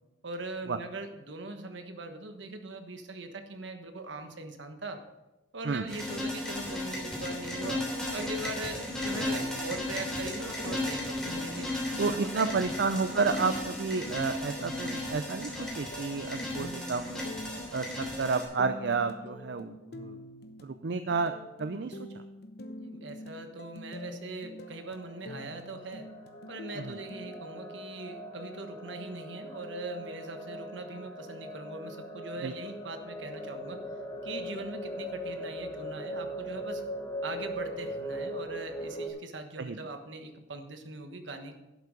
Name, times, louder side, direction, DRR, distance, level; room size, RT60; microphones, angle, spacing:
voice 1, 0.2-5.0 5.5-11.7 12.1-12.7 22.8-26.1 26.5-33.8 34.2-36.8 37.2-41.5, right 2 dB, 80° right, 6 dB, 1.4 m, -41 dB
sound 1, 5.9-18.4, left 1 dB, 5° left, 3.1 m, -35 dB
sound 2, 9.4-27.3, left 1 dB, 55° left, 0.8 m, -46 dB
voice 2, 12.0-17.4 17.7-20.2 20.6-22.1 26.8-27.0 32.4-32.5 39.6-39.8, right 4 dB, 65° right, 10 dB, 0.5 m, -31 dB
sound 3, 24.6-39.1, equal, 25° left, 1.2 m, -40 dB
11.5 x 8.3 x 5.0 m, 0.99 s
head